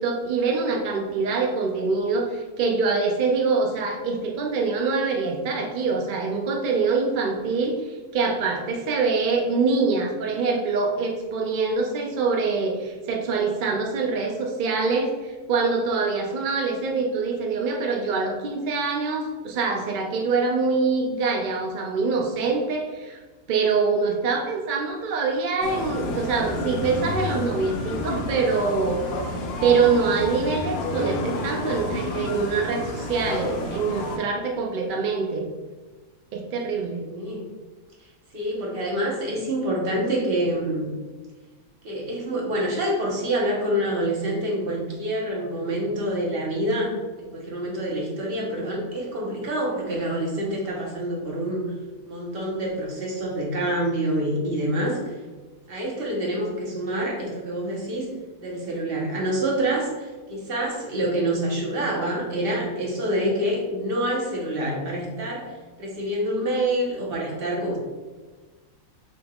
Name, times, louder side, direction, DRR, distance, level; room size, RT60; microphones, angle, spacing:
voice 1, 0.0-23.2 23.5-29.0 29.6-35.5 36.3-37.0, right 4 dB, 70° right, 1 dB, 0.4 m, -24 dB
sound 1, 25.6-34.2, left 2 dB, 60° left, 0.7 m, -30 dB
voice 2, 37.0-37.4 38.3-40.9 41.8-51.7 52.1-55.2 55.7-58.1 58.4-67.8, right 1 dB, 45° right, -3 dB, 1.2 m, -27 dB
6.5 x 3.5 x 2.4 m, 1.3 s
omnidirectional pair, 1.5 m